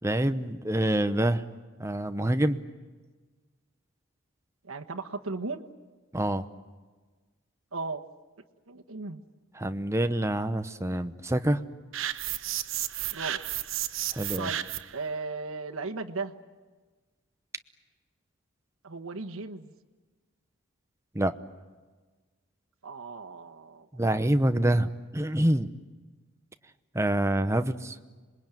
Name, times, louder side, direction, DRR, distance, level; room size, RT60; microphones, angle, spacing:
voice 1, 0.0-1.4 1.8-2.6 6.1-6.5 9.6-11.6 14.1-14.5 21.1-21.3 23.9-25.7 26.9-28.0, right 1 dB, 15° right, 9 dB, 0.9 m, -26 dB
voice 2, 4.6-5.6 7.7-8.0 8.7-9.2 13.1-13.4 14.4-14.6 14.9-16.3 18.8-19.7 22.8-23.9, right 3 dB, 90° right, 4 dB, 1.4 m, -36 dB
sound 1, 11.9-15.0, right 12 dB, 70° right, 1.0 m, -32 dB
26.5 x 21.5 x 9.2 m, 1.4 s
head